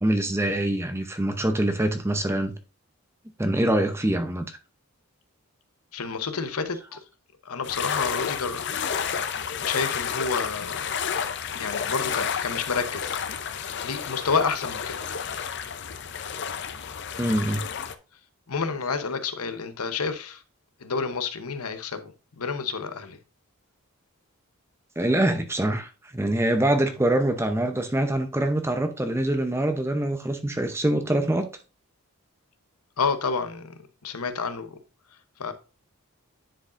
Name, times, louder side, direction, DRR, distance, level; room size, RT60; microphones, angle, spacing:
voice 1, 0.0-2.5 3.4-4.6 17.2-17.6 25.0-31.5, right 1 dB, 10° right, 0.6 m, -24 dB
voice 2, 5.9-7.0 7.5-8.7 9.6-10.9 11.6-13.2 13.8-15.0 18.5-20.4 20.8-23.2 33.0-33.7 34.0-34.8 35.4-35.5, left 5 dB, 80° left, 0.9 m, -29 dB
sound 1, 7.6-17.9, left 7 dB, 50° left, 0.5 m, -31 dB
10.0 x 4.7 x 2.5 m
head